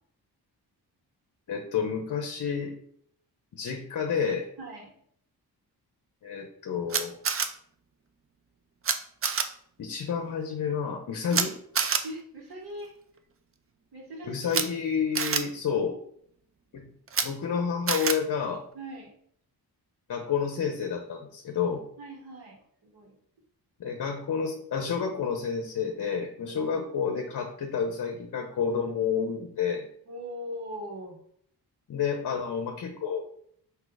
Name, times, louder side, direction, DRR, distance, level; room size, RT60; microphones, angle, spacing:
voice 1, 1.5-2.7 3.5-4.5 6.2-7.1 9.8-11.5 14.3-16.0 16.7-16.9 17.2-18.6 20.1-21.8 23.8-29.9 31.9-33.3, left 6 dB, 50° left, 3 dB, 0.7 m, -30 dB
voice 2, 4.6-4.9 11.3-11.4 12.0-12.9 13.9-14.7 18.7-19.1 22.0-22.6 22.8-23.2 26.4-26.6 27.0-27.1 30.1-31.2, equal, 70° right, -1 dB, 1.5 m, -40 dB
Camera, 6.9-7.5 8.8-8.9 9.2-9.4 11.3-11.4 11.7-12.0 14.5-14.6 15.1-15.4 17.1-17.2 17.9-18.1, right 6 dB, 35° right, 0.4 m, -26 dB
4.7 x 2.8 x 3.9 m, 0.64 s
wide cardioid pair, 125°, 40 cm